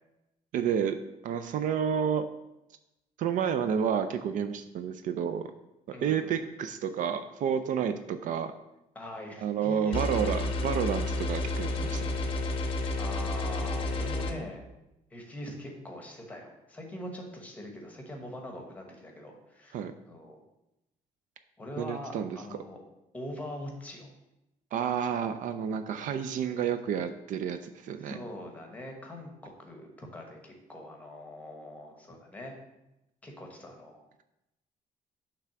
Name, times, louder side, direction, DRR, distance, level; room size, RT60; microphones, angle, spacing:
voice 1, 0.5-1.0 1.2-2.2 3.2-5.5 6.0-8.5 9.4-12.1 19.7-19.9 21.8-22.4 24.7-28.1, right 8 dB, 65° right, 9 dB, 0.4 m, -30 dB
voice 2, 5.9-6.4 8.9-10.3 13.0-14.6 15.1-19.8 20.0-20.4 21.6-22.8 23.1-24.1 26.0-26.6 28.0-32.6 33.2-34.0, left 1 dB, 10° left, 1 dB, 1.0 m, -43 dB
sound 1, 9.9-14.3, left 2 dB, 40° left, 0.6 m, -31 dB
5.9 x 3.4 x 5.8 m, 0.91 s
cardioid pair, 170°, 15 cm